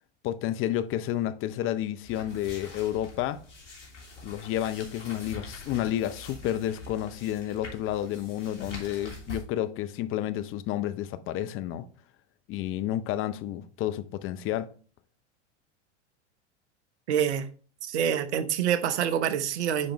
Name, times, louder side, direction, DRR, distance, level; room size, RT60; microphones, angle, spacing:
voice 1, 0.2-3.4 4.2-11.9 12.5-14.7, left 12 dB, 35° left, 0.6 m, -30 dB
sound 1, 2.0-9.4, left 2 dB, 80° left, 3.1 m, -44 dB
voice 2, 17.1-17.4 17.8-19.9, right 9 dB, 70° right, 1.0 m, -26 dB
9.6 x 5.2 x 3.1 m
hypercardioid pair, 95°, 36 cm